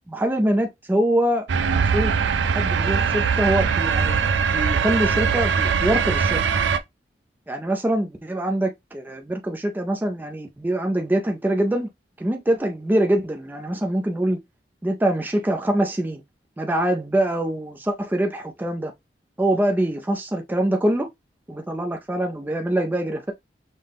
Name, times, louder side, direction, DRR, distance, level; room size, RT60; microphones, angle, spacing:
voice 1, 0.1-4.2 4.5-6.4 7.5-11.9 12.2-14.4 14.8-16.2 16.6-18.9 19.4-21.1 21.5-23.3, right 1 dB, 10° right, 0.3 m, -24 dB
sound 1, 1.5-6.8, right 6 dB, 75° right, 0.4 m, -21 dB
5.6 x 2.1 x 3.4 m
head